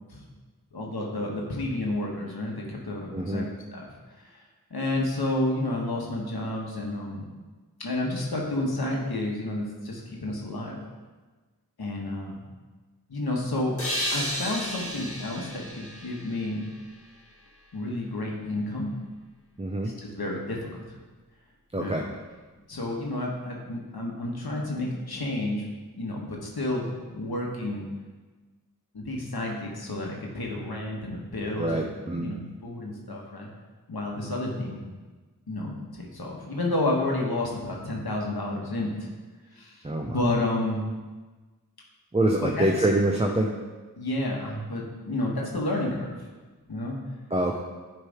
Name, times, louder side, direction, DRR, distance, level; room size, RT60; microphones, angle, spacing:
voice 1, 0.7-3.9 4.2-4.3 4.7-7.3 7.8-10.8 11.8-12.4 13.1-13.8 14.1-16.7 17.7-18.9 19.8-20.9 21.7-21.9 22.7-25.6 26.0-27.8 28.9-32.4 32.6-33.5 33.9-34.8 35.5-39.1 39.6-40.8 42.4-42.9 44.0-46.3 46.7-47.0, left 1 dB, 80° left, -2 dB, 1.2 m, -30 dB
voice 2, 3.1-3.5 19.6-19.9 21.7-22.1 31.6-32.4 39.8-40.2 42.1-43.5 47.3-47.6, right 1 dB, 15° right, 0 dB, 0.5 m, -25 dB
sound 1, 13.8-17.3, equal, 35° left, 1.4 m, -33 dB
8.5 x 3.3 x 4.9 m, 1.3 s
wide cardioid pair, 50°, 37 cm